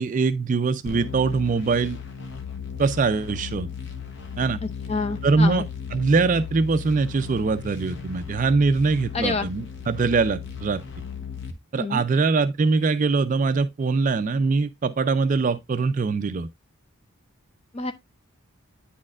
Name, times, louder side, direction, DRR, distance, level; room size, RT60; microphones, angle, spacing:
voice 1, 0.0-2.0 2.8-3.7 4.4-4.6 5.2-5.6 5.9-10.8 11.7-16.5, right 4 dB, 35° right, 0.3 m, -22 dB
sound 1, 0.9-11.5, left 7 dB, 50° left, 0.9 m, -36 dB
voice 2, 4.6-5.7 9.1-9.5 11.8-12.0 17.7-17.9, left 3 dB, 30° left, 0.5 m, -28 dB
9.6 x 4.3 x 2.4 m
head